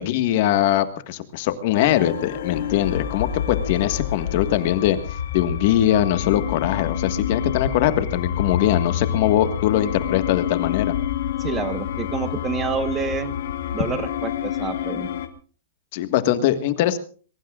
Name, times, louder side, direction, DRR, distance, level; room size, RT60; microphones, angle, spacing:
voice 1, 0.0-5.0 5.3-10.9 15.9-17.0, left 12 dB, 45° left, 10 dB, 1.6 m, -21 dB
sound 1, 1.7-15.3, left 9 dB, 65° left, 2.2 m, -28 dB
voice 2, 11.4-13.4 13.7-15.1, right 6 dB, 15° right, 11 dB, 1.3 m, -28 dB
22.5 x 22.5 x 2.5 m, 0.40 s
supercardioid pair, 165°, 0 cm